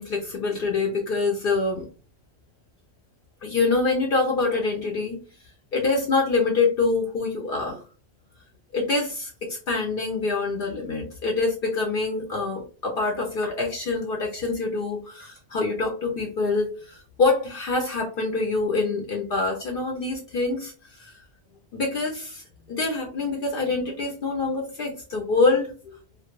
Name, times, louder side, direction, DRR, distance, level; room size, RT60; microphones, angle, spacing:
voice 1, 0.0-1.9 3.4-5.2 5.7-7.8 8.7-21.2 21.7-26.0, left 3 dB, 60° left, 1 dB, 0.7 m, -25 dB
2.3 x 2.2 x 2.9 m, 0.36 s
omnidirectional pair, 1.1 m